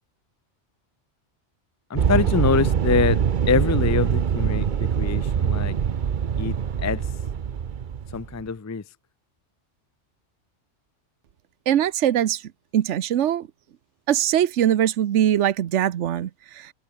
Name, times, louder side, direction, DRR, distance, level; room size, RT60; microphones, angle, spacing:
voice 1, 1.9-5.8 6.4-7.1 8.1-8.8, left 5 dB, 25° left, 0.4 m, -25 dB
sound 1, 2.0-8.4, right 8 dB, 50° right, 0.8 m, -23 dB
voice 2, 11.7-12.4 12.7-13.5 14.1-16.3, right 10 dB, 75° right, 1.1 m, -21 dB
omnidirectional pair, 1.2 m